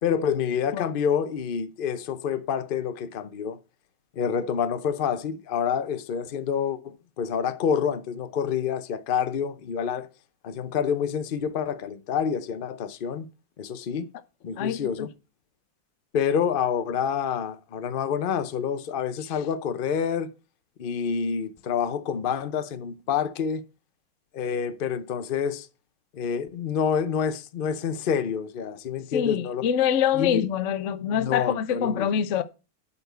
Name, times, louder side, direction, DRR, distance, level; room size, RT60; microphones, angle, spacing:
voice 1, 0.0-3.6 4.2-10.1 10.4-13.3 13.6-14.1 14.4-15.1 16.1-20.3 20.8-23.6 24.3-25.7 26.1-29.7 30.1-30.4 31.1-32.1, left 7 dB, 85° left, 0.4 m, -27 dB
voice 2, 14.6-14.9 29.1-32.4, left 8 dB, 60° left, 0.8 m, -25 dB
12.0 x 4.4 x 8.1 m
omnidirectional pair, 2.1 m